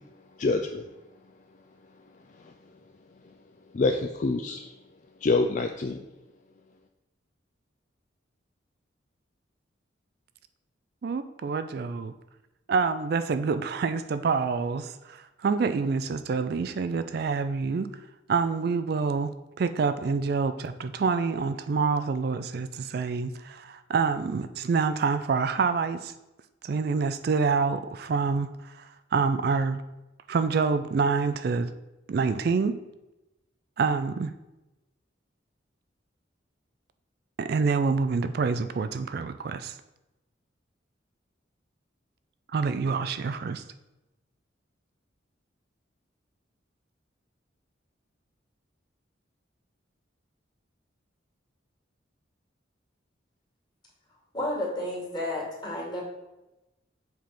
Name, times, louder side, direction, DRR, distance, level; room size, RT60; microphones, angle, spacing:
voice 1, 0.4-0.9 2.4-2.5 3.7-4.7 5.2-6.0, left 3 dB, 40° left, 5 dB, 0.4 m, -26 dB
voice 2, 11.0-12.1 12.7-17.9 18.3-26.1 26.6-29.8 30.3-31.7 32.1-32.8 33.8-34.3 37.4-39.8 42.5-43.6, right 5 dB, 55° right, 11 dB, 0.3 m, -27 dB
voice 3, 54.3-56.0, left 1 dB, 25° left, -4 dB, 2.1 m, -31 dB
7.5 x 3.5 x 5.7 m, 0.99 s
head